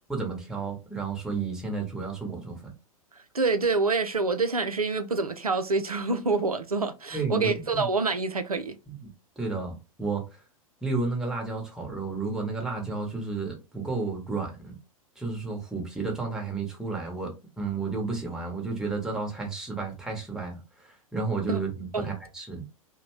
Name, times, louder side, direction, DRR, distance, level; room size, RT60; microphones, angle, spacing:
voice 1, 0.1-2.7 7.1-7.9 8.9-9.1 9.4-10.4 10.8-14.8 15.2-22.6, right 4 dB, 5° right, 0.9 m, -32 dB
voice 2, 3.3-8.8 21.5-21.6 21.9-22.0, right 3 dB, 90° right, 0.5 m, -26 dB
2.7 x 2.2 x 2.9 m
figure-of-eight pair, 100°, 18 cm